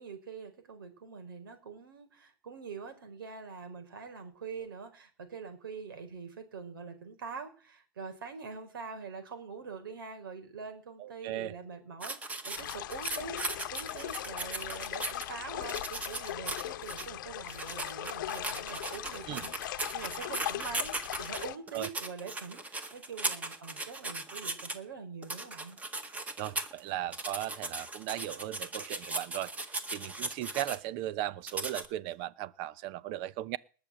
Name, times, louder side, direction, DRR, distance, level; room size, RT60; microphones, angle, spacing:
voice 1, 0.0-25.8, right 5 dB, 80° right, 4.9 m, -44 dB
voice 2, 11.0-11.5 19.3-19.4 21.7-21.9 26.4-29.5 29.9-33.6, right 14 dB, 40° right, 0.9 m, -37 dB
sound 1, 12.0-15.2 15.6-17.1 17.5-24.7 25.2-26.8 27.1-30.8 31.5-31.9, right 2 dB, 15° right, 1.8 m, -38 dB
sound 2, 12.6-21.5, left 14 dB, 60° left, 1.0 m, -39 dB
19.5 x 7.1 x 7.8 m
hypercardioid pair, 130°, 11 cm